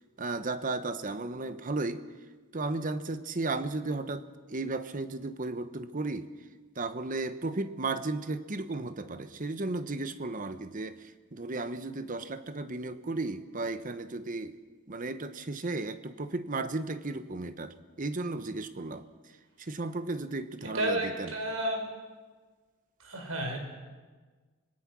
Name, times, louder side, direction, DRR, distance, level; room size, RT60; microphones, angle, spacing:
voice 1, 0.2-2.0 2.5-6.3 6.8-14.6 14.9-19.0 19.6-21.3, right 2 dB, 40° right, 12 dB, 1.0 m, -34 dB
voice 2, 20.7-21.8 23.0-23.6, right 1 dB, 80° right, 3 dB, 5.0 m, -31 dB
25.5 x 19.0 x 6.2 m, 1.4 s
head